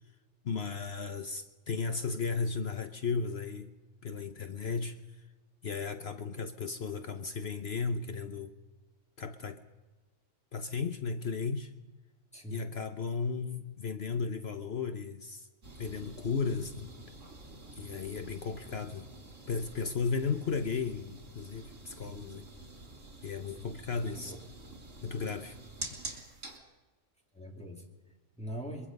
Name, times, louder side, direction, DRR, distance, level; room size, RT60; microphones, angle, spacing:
voice 1, 0.4-3.7 4.0-5.0 5.6-8.6 9.2-9.6 10.5-11.7 12.5-15.5 15.8-16.9 17.8-19.1 19.5-22.5 23.2-24.3 25.0-25.6, left 5 dB, 60° left, 1.0 m, -35 dB
voice 2, 12.3-12.7 22.0-22.3 23.6-23.7 24.1-24.4 27.3-28.9, equal, 5° left, 2.5 m, -43 dB
sound 1, 15.6-26.6, right 2 dB, 75° right, 3.5 m, -48 dB
23.5 x 22.5 x 5.3 m
omnidirectional pair, 1.3 m